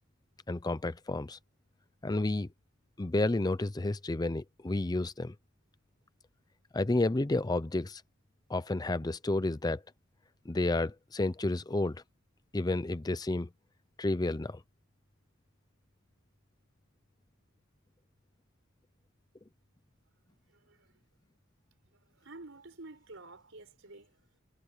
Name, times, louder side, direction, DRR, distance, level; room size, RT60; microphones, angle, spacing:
voice 1, 0.5-1.4 2.0-2.5 3.0-5.3 6.7-8.0 8.5-9.8 10.5-12.0 12.5-13.5 14.0-14.6, left 2 dB, 20° left, 0.5 m, -31 dB
voice 2, 20.3-21.0 21.7-24.4, right 2 dB, 65° right, 5.3 m, -51 dB
head